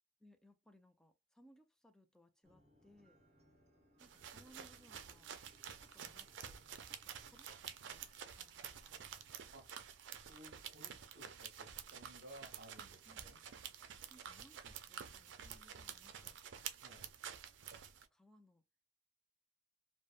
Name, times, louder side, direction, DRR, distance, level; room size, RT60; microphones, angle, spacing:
voice 1, 0.2-3.2 4.0-5.4 5.8-8.0 8.3-9.3 13.1-13.3 14.1-16.4 18.1-18.6, equal, 5° left, 0.3 m, -67 dB
sound 1, 2.4-9.3, equal, 40° right, 0.9 m, -70 dB
sound 2, 4.0-18.1, right 8 dB, 85° right, 0.4 m, -50 dB
voice 2, 10.2-13.4 16.8-17.1, right 1 dB, 65° right, 0.9 m, -58 dB
3.3 x 2.1 x 2.4 m
head